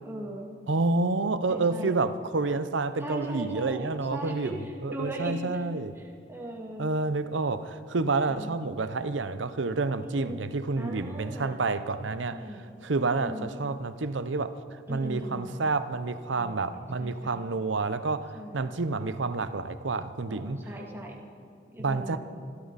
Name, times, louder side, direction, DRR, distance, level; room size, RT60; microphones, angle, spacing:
voice 1, 0.0-0.5 1.5-1.9 3.0-5.6 6.0-7.0 8.3-8.6 10.0-10.4 10.8-11.6 12.3-12.6 13.1-13.5 14.9-15.5 16.4-17.4 18.3-18.6 20.3-21.2 21.7-22.2, right 1 dB, 15° right, -2 dB, 2.2 m, -39 dB
voice 2, 0.7-5.9 6.8-12.4 12.8-14.6 14.9-20.6 21.8-22.2, right 3 dB, 80° right, 12 dB, 0.7 m, -29 dB
26.0 x 13.0 x 4.1 m, 2.3 s
head